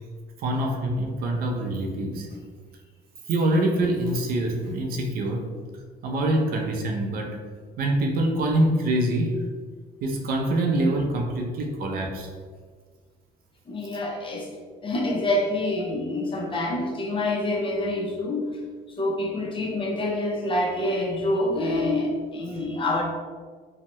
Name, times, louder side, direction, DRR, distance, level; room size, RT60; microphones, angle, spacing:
voice 1, 0.4-2.4 3.3-5.5 6.0-7.4 7.8-9.3 10.0-12.3, right 1 dB, 60° right, 2 dB, 0.5 m, -25 dB
voice 2, 13.7-14.5 14.8-18.5 19.0-23.0, left 1 dB, 30° left, 0 dB, 0.5 m, -26 dB
2.7 x 2.1 x 2.9 m, 1.5 s
cardioid pair, 110°, 17 cm